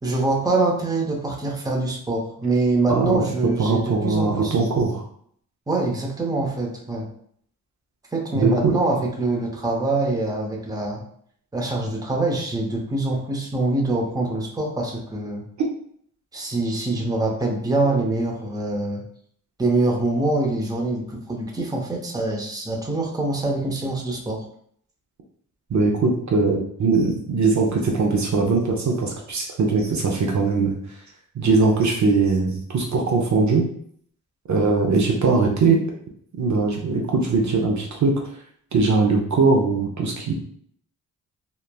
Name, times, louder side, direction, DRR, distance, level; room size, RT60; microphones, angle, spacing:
voice 1, 0.0-4.6 5.7-7.1 8.1-11.0 11.5-15.4 16.3-19.0 19.6-24.4, right 2 dB, 10° right, -1 dB, 0.6 m, -24 dB
voice 2, 2.9-5.0 8.3-8.7 25.7-30.8 31.4-33.7 34.5-35.8 36.4-38.2 38.7-40.3, right 3 dB, 50° right, 0 dB, 0.6 m, -21 dB
3.1 x 2.0 x 2.2 m, 0.64 s
cardioid pair, 65°, 37 cm